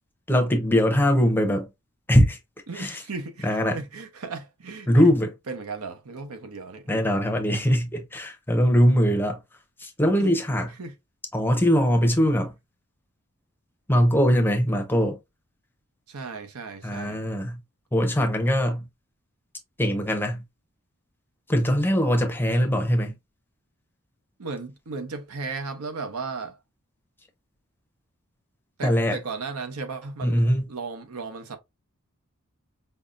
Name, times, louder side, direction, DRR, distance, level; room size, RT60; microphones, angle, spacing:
voice 1, 0.3-1.7 2.1-2.4 2.8-3.0 3.4-3.8 4.9-5.3 6.9-9.4 9.8-10.7 11.3-12.5 13.9-15.2 16.8-17.6 17.9-18.9 19.8-20.4 21.5-23.1 28.8-29.2 30.2-30.6, equal, 10° left, 0.6 m, -21 dB
voice 2, 2.7-5.1 5.5-6.9 10.0-10.3 10.8-10.9 16.1-17.2 24.4-26.6 28.8-31.6, right 4 dB, 80° right, 0.8 m, -35 dB
5.4 x 2.1 x 2.4 m
head